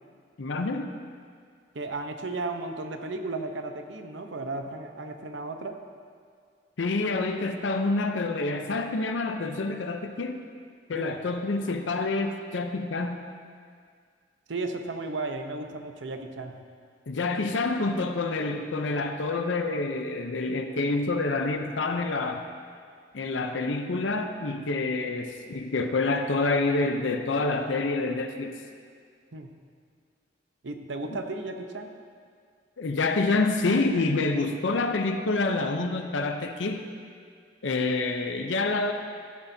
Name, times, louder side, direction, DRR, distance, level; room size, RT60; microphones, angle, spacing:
voice 1, 0.4-0.9 6.8-10.4 10.9-13.2 17.1-22.4 23.1-28.5 32.8-36.8 37.6-38.9, left 3 dB, 75° left, 6 dB, 0.7 m, -27 dB
voice 2, 1.7-5.8 10.9-11.2 14.5-16.6 29.3-29.5 30.6-31.9, right 3 dB, 70° right, 5 dB, 0.8 m, -34 dB
14.5 x 11.5 x 2.7 m, 2.1 s
head